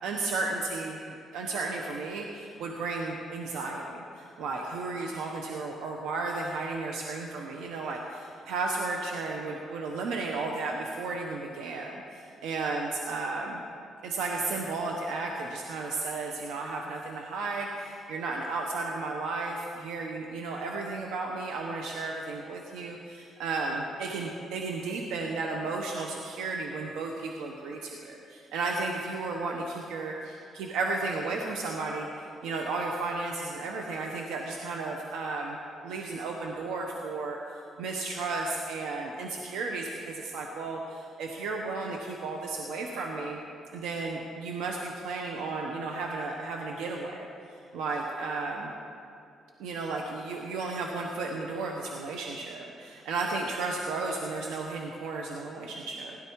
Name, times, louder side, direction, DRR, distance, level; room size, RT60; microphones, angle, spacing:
voice 1, 0.0-13.6 14.0-32.1 32.4-35.6 35.8-43.4 43.7-47.2 47.5-48.7 49.6-56.2, right 3 dB, 90° right, 1 dB, 1.1 m, -34 dB
16.5 x 11.0 x 4.7 m, 2.6 s
cardioid pair, 90°, 0 cm